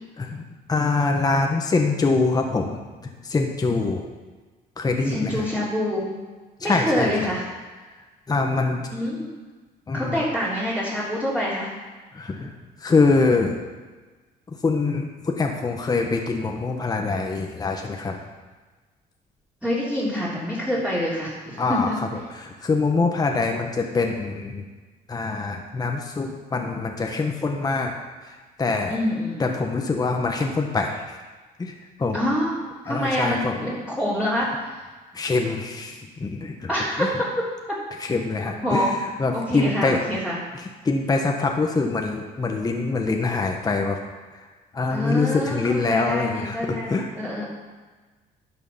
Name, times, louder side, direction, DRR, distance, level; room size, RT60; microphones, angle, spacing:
voice 1, 0.7-2.8 3.2-4.1 4.8-5.4 6.6-7.3 8.3-8.9 9.9-10.2 12.1-12.5 12.8-13.6 14.6-18.2 21.6-21.9 22.3-24.6 25.1-27.9 28.6-28.9 29.4-31.0 31.6-31.7 32.0-32.2 32.9-33.5 35.1-36.7 37.0-37.1 38.0-40.0 40.8-44.0 44.7-47.1, left 3 dB, 20° left, 2 dB, 1.2 m, -24 dB
voice 2, 5.0-6.1 6.6-7.4 8.9-9.4 9.9-11.7 19.6-22.0 28.9-29.6 32.1-34.8 36.7-37.1 37.7-37.8 38.6-38.9 39.3-40.4 44.9-45.6 45.9-47.5, left 1 dB, 5° right, -9 dB, 3.2 m, -26 dB
11.5 x 6.8 x 5.7 m, 1.3 s
cardioid pair, 110°, 17 cm